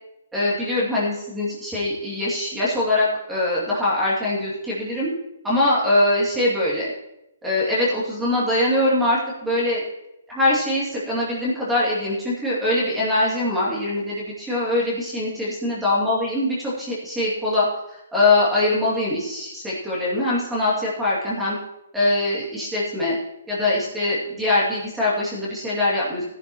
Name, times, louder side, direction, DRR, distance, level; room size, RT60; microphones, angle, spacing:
voice 1, 0.3-5.1 5.4-6.9 7.4-9.8 10.3-17.7 18.1-21.6 21.9-23.2 23.5-26.2, left 2 dB, 5° right, -7 dB, 2.5 m, -22 dB
15.5 x 10.5 x 3.0 m, 0.86 s
hypercardioid pair, 170°, 0 cm